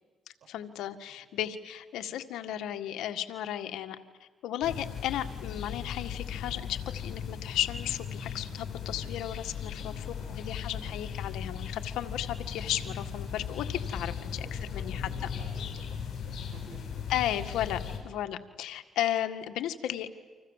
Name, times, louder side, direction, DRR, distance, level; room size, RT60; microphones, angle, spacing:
voice 1, 0.5-4.0 4.4-15.1 17.1-17.8 18.0-20.1, left 11 dB, 85° left, 8 dB, 1.8 m, -34 dB
sound 1, 4.6-18.0, left 7 dB, 60° left, 7.7 m, -37 dB
voice 2, 9.8-10.8 12.4-12.6 14.2-17.1 17.8-18.0, right 4 dB, 70° right, 4 dB, 7.5 m, -53 dB
30.0 x 26.5 x 7.4 m, 1.4 s
cardioid pair, 90°, 0 cm